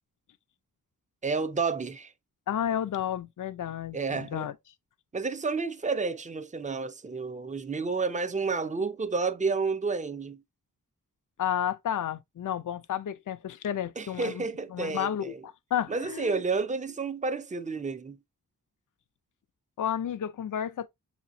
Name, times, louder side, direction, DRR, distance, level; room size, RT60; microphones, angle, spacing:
voice 1, 1.2-2.1 3.9-4.5 5.1-10.4 14.0-15.4 15.9-18.2, right 4 dB, 20° right, 0.6 m, -30 dB
voice 2, 2.5-4.5 11.4-14.4 14.7-16.4 19.8-20.9, left 10 dB, 60° left, 0.5 m, -31 dB
6.5 x 2.9 x 2.6 m
cardioid pair, 55°, 35 cm